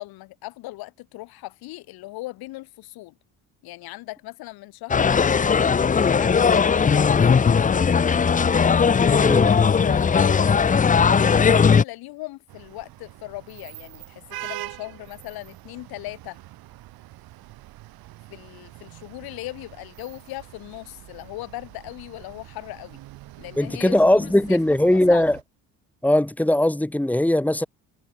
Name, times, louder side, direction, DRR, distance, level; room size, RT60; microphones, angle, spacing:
voice 1, 0.0-3.1 3.6-5.5 6.0-8.1 9.4-16.4 18.3-23.0 23.4-24.6 24.9-25.3, left 19 dB, 75° left, 2.9 m, -38 dB
sound 1, 4.9-11.8, left 6 dB, 20° left, 0.6 m, -18 dB
voice 2, 9.2-9.5 23.6-25.4 26.0-27.7, left 1 dB, 5° left, 1.2 m, -19 dB
sound 2, 12.5-25.4, right 17 dB, 75° right, 3.0 m, -43 dB
supercardioid pair, 70°, 37 cm